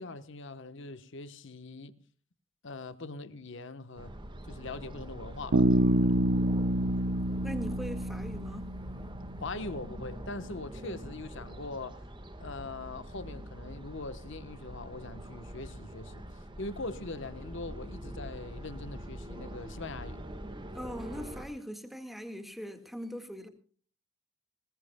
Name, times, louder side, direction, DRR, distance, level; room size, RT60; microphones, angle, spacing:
voice 1, 0.0-1.9 2.6-4.1 4.5-5.7 6.0-6.2 6.5-6.6 9.4-12.0 12.4-16.2 16.6-20.3, left 3 dB, 60° left, 1.1 m, -41 dB
sound 1, 4.0-21.5, equal, 25° right, 1.5 m, -44 dB
Bass guitar, 5.5-9.2, right 1 dB, 75° right, 0.8 m, -27 dB
voice 2, 7.4-8.7 20.7-23.5, equal, ahead, 1.7 m, -41 dB
20.0 x 19.5 x 2.2 m
head